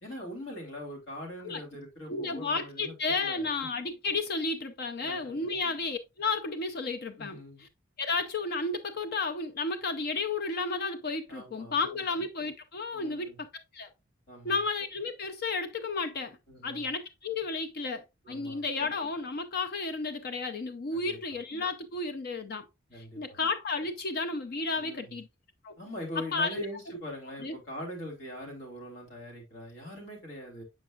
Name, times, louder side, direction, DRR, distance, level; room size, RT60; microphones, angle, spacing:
voice 1, 0.0-3.5 5.0-5.6 7.2-7.6 11.3-12.1 12.9-13.4 14.3-14.6 16.5-16.9 18.2-18.7 20.9-21.4 22.9-23.4 24.7-25.2 25.8-30.6, equal, 65° left, 3.1 m, -42 dB
voice 2, 2.1-7.4 8.0-13.5 13.7-13.9 14.4-16.4 16.6-22.7 22.9-25.3 25.6-25.7 26.3-26.7 27.4-27.6, left 3 dB, 50° left, 0.5 m, -32 dB
8.0 x 5.2 x 2.4 m
head